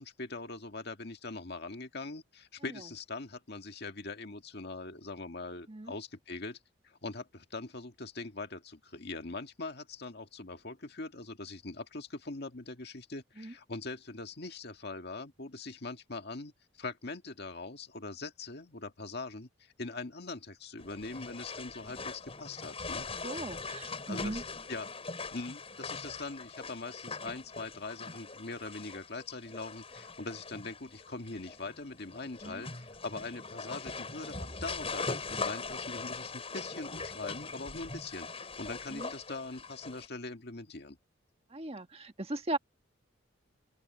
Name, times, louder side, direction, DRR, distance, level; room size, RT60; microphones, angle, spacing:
voice 1, 0.0-6.6 6.8-16.5 16.8-23.1 24.1-24.9 25.3-41.0, left 3 dB, 55° left, 1.9 m, -42 dB
sound 1, 20.8-40.1, left 4 dB, 30° left, 5.4 m, -41 dB
voice 2, 23.2-24.4 32.4-32.6 38.9-39.1 41.5-42.6, right 2 dB, 30° right, 1.6 m, -38 dB
open air
head